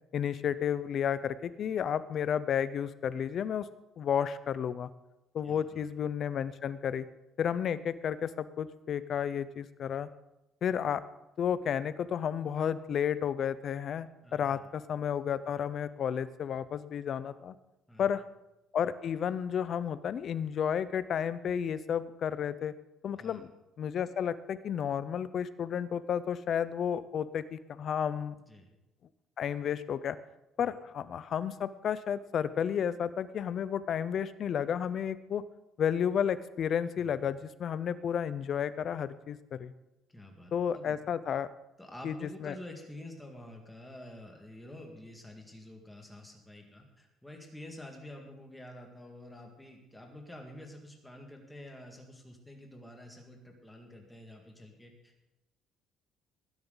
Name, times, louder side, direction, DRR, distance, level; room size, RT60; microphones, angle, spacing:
voice 1, 0.1-3.7 4.0-4.9 5.3-7.0 7.4-10.1 10.6-11.0 11.4-17.5 18.0-18.2 18.7-22.7 23.0-23.5 23.8-28.3 29.4-30.2 30.6-35.4 35.8-39.7 40.5-41.5 42.0-42.2 42.4-42.5, left 8 dB, 35° left, 15 dB, 0.5 m, -32 dB
voice 2, 5.4-5.9 14.2-14.7 17.9-18.1 23.2-23.5 28.5-28.7 30.6-30.7 36.9-37.3 40.1-41.0 41.8-55.3, left 1 dB, 5° left, 1 dB, 1.9 m, -49 dB
19.5 x 10.5 x 3.9 m, 0.95 s
cardioid pair, 175°, 0 cm